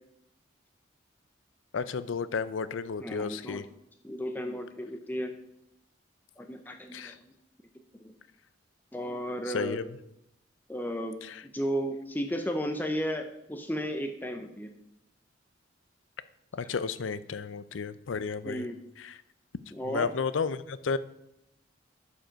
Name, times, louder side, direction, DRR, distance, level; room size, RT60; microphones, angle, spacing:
voice 1, 1.7-3.7 6.9-7.2 9.5-9.8 11.2-11.4 16.5-18.7 19.0-19.2 19.8-21.0, left 5 dB, 85° left, 15 dB, 0.5 m, -32 dB
voice 2, 3.0-3.6 4.0-5.3 6.4-7.4 8.0-8.1 8.9-9.8 10.7-11.2 11.5-14.7 18.4-18.7 19.7-20.1, equal, 10° left, 5 dB, 0.6 m, -34 dB
12.0 x 5.1 x 5.1 m, 0.82 s
head